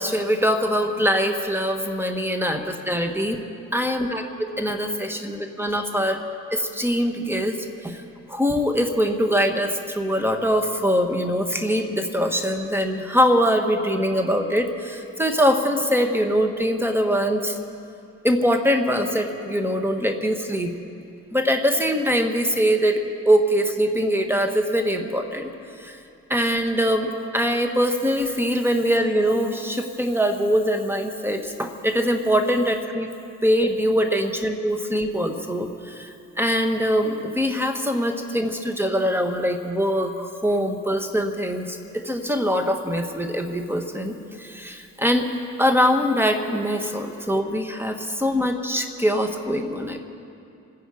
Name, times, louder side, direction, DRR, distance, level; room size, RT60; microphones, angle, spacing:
voice 1, 0.0-3.4 3.7-6.2 6.5-8.0 8.3-17.6 18.2-20.7 21.3-25.5 25.8-26.0 26.3-33.1 33.4-45.3 45.6-50.0, equal, 5° right, 4 dB, 1.4 m, -23 dB
27.5 x 10.0 x 5.0 m, 2.6 s
cardioid pair, 90°, 30 cm